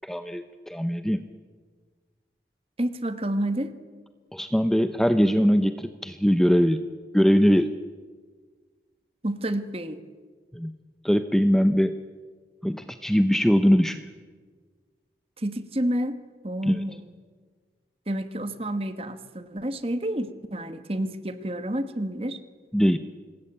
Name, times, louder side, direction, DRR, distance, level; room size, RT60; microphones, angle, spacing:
voice 1, 0.0-1.2 4.3-6.8 7.1-7.8 10.5-10.7 11.0-12.0 12.6-14.1 16.7-16.8 22.7-23.0, equal, ahead, 10 dB, 0.7 m, -21 dB
voice 2, 2.8-3.7 9.2-10.0 15.4-16.2 16.4-17.0 18.1-22.4, right 1 dB, 35° right, 10 dB, 1.6 m, -29 dB
26.0 x 21.0 x 8.9 m, 1.5 s
head